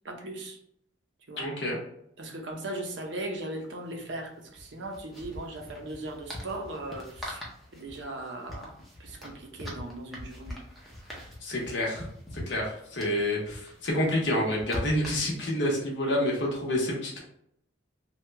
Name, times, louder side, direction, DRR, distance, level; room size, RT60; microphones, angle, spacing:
voice 1, 0.0-0.6 1.3-1.5 2.2-7.5 7.7-8.7 9.0-10.6, right 1 dB, 65° right, 3 dB, 0.6 m, -38 dB
voice 2, 1.4-1.8 11.4-12.1 12.3-17.2, left 1 dB, 65° left, -2 dB, 0.9 m, -28 dB
sound 1, 2.5-2.6 2.8-3.0 4.4-15.7, left 1 dB, ahead, 0.6 m, -43 dB
3.0 x 2.2 x 3.2 m, 0.71 s
head